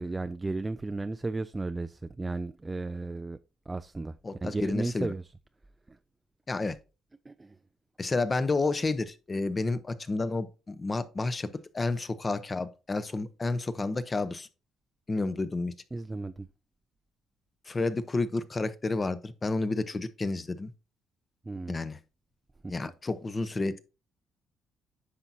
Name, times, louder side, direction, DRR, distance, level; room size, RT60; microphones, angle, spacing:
voice 1, 0.0-3.4 3.7-5.3 5.9-6.0 7.2-7.6 15.9-16.5 21.4-21.8 22.6-22.9, right 3 dB, 15° right, 0.3 m, -34 dB
voice 2, 4.2-5.1 6.5-6.8 8.0-14.5 15.1-15.7 17.7-20.7 21.7-22.0 22.7-23.8, left 3 dB, 25° left, 0.8 m, -30 dB
9.7 x 6.0 x 2.7 m
cardioid pair, 105°, 0 cm